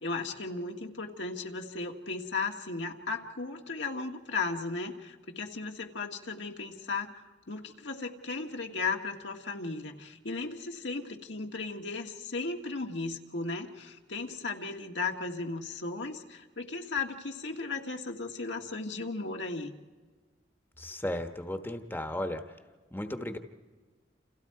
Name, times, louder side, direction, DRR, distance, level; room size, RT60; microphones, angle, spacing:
voice 1, 0.0-19.7, left 3 dB, 85° left, 3 dB, 1.7 m, -36 dB
voice 2, 20.8-22.5 22.9-23.4, left 1 dB, 10° left, 7 dB, 1.1 m, -35 dB
29.0 x 28.0 x 4.8 m, 1.4 s
head